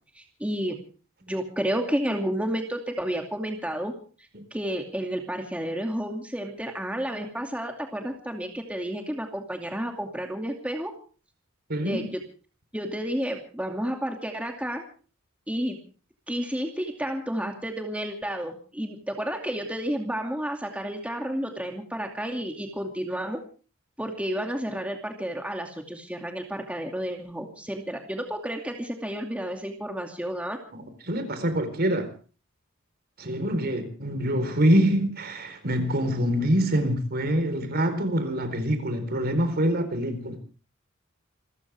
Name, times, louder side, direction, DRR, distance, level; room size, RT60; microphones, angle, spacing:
voice 1, 0.1-0.8 1.2-3.9 4.5-10.9 11.8-12.2 12.7-14.8 15.5-15.8 16.3-23.4 24.0-30.6, equal, 5° right, 2.5 m, -31 dB
voice 2, 11.7-12.1 30.7-32.1 33.2-40.4, equal, 50° right, 4.3 m, -25 dB
28.0 x 14.5 x 3.5 m
head